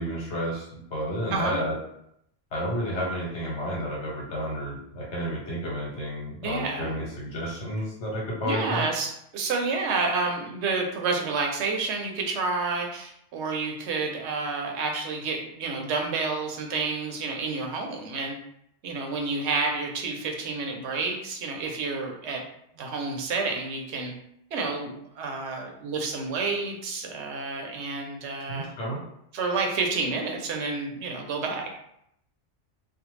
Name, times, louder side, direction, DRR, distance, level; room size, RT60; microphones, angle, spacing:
voice 1, 0.0-1.7 2.5-8.8 28.5-29.0, equal, 75° left, -5 dB, 1.2 m, -31 dB
voice 2, 6.4-6.9 8.4-18.4 18.8-22.4 22.7-24.1 24.5-28.7 29.3-31.7, right 4 dB, 75° right, 2 dB, 0.8 m, -29 dB
2.5 x 2.1 x 3.0 m, 0.75 s
omnidirectional pair, 1.2 m